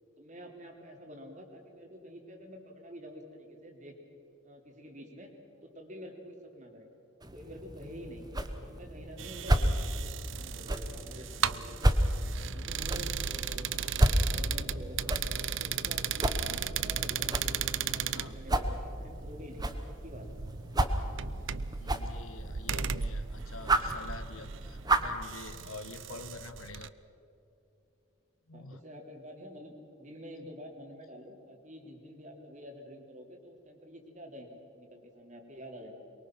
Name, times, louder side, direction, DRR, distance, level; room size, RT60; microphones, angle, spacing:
voice 1, 0.2-4.0 4.4-5.3 5.6-6.9 7.3-8.3 8.6-12.1 12.5-13.9 14.3-19.7 20.0-20.3 28.5-36.0, equal, 35° right, 2 dB, 3.1 m, -48 dB
sound 1, 7.2-25.2, right 1 dB, 20° right, 1.1 m, -32 dB
sound 2, 9.2-26.9, right 8 dB, 60° right, 0.6 m, -37 dB
voice 2, 21.8-26.9 28.5-28.8, left 3 dB, 75° left, 11 dB, 1.2 m, -47 dB
23.5 x 23.0 x 6.0 m, 2.9 s
head